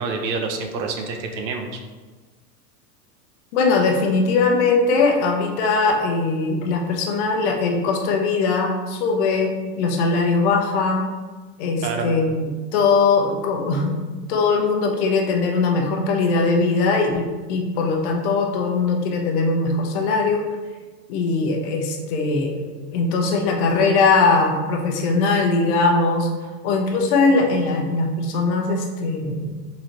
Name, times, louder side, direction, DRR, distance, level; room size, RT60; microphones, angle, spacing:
voice 1, 0.0-1.8 11.8-12.1, right 4 dB, 85° right, 4 dB, 0.8 m, -27 dB
voice 2, 3.5-11.1 11.6-14.0 14.3-20.5 21.1-26.3 26.6-29.7, left 3 dB, 40° left, 1 dB, 0.7 m, -20 dB
4.0 x 3.8 x 3.0 m, 1.3 s
supercardioid pair, 145°, 50 cm